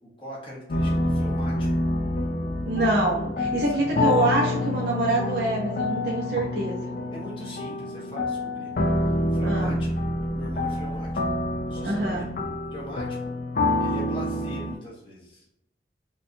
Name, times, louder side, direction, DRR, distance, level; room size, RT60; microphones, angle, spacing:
voice 1, 0.2-1.7 3.6-3.8 7.1-8.7 9.3-11.1 11.7-12.3 12.7-13.4 13.8-15.6, left 1 dB, 30° left, -5 dB, 1.2 m, -41 dB
sound 1, 0.7-14.7, left 1 dB, 50° left, 0.4 m, -27 dB
voice 2, 2.7-6.8 9.4-9.8 11.8-12.3, right 2 dB, 65° right, -3 dB, 0.7 m, -25 dB
4.4 x 2.5 x 2.7 m, 0.85 s
head